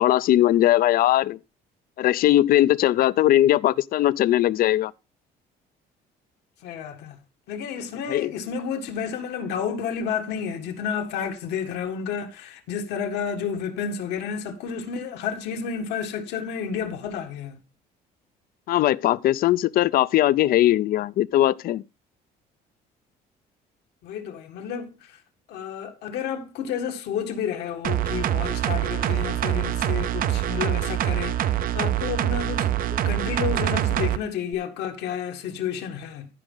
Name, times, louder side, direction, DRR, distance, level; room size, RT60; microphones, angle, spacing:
voice 1, 0.0-1.4 2.0-4.9 8.1-8.3 18.7-21.8, left 13 dB, 60° left, 0.5 m, -20 dB
voice 2, 6.6-7.2 7.5-17.6 24.0-25.2 25.5-36.3, left 7 dB, 80° left, 1.8 m, -31 dB
sound 1, 27.8-34.2 34.5-34.6, right 12 dB, 55° right, 0.6 m, -25 dB
14.5 x 5.2 x 3.8 m
cardioid pair, 110°, 17 cm